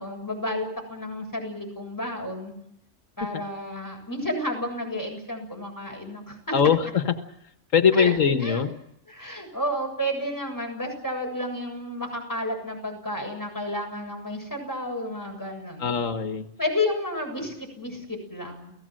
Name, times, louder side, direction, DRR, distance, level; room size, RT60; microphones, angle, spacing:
voice 1, 0.0-2.5 3.2-6.6 7.9-8.1 8.4-8.6 9.1-15.9 16.6-18.7, left 1 dB, 15° left, 2 dB, 7.5 m, -31 dB
voice 2, 6.5-7.1 7.7-8.7 15.8-16.5, left 7 dB, 90° left, 7 dB, 1.8 m, -21 dB
29.5 x 17.5 x 7.7 m, 0.80 s
omnidirectional pair, 1.3 m